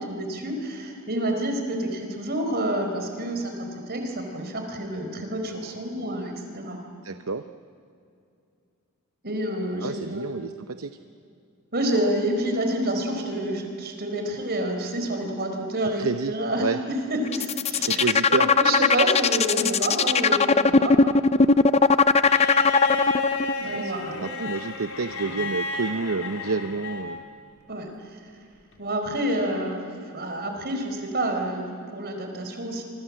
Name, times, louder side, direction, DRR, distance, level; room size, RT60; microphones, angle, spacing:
voice 1, 0.0-6.8 9.2-10.4 11.7-21.0 23.6-24.3 27.7-27.9 28.8-29.8 30.1-32.8, right 1 dB, 45° right, 4 dB, 4.8 m, -28 dB
voice 2, 7.0-7.4 9.8-10.5 10.8-10.9 15.9-16.8 17.8-18.5 23.6-23.9 24.2-27.2, right 4 dB, 65° right, 9 dB, 0.8 m, -29 dB
sound 1, 17.3-23.5, left 4 dB, 30° left, 0.6 m, -19 dB
Bowed string instrument, 22.2-27.3 28.7-28.8, left 3 dB, 70° left, 3.5 m, -31 dB
28.0 x 24.5 x 7.6 m, 2.5 s
head